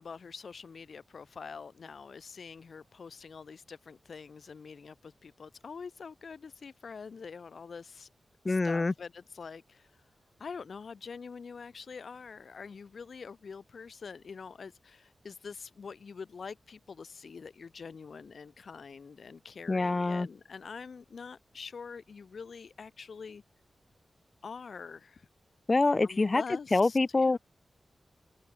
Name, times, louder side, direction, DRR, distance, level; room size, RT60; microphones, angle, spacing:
voice 1, 0.0-8.1 8.5-9.9 10.4-23.4 24.4-25.3 26.0-27.4, left 5 dB, 75° left, 0.8 m, -45 dB
voice 2, 8.4-8.9 19.7-20.3 25.7-26.4 26.7-27.4, left 3 dB, 45° left, 0.4 m, -25 dB
cardioid pair, 40°, 0 cm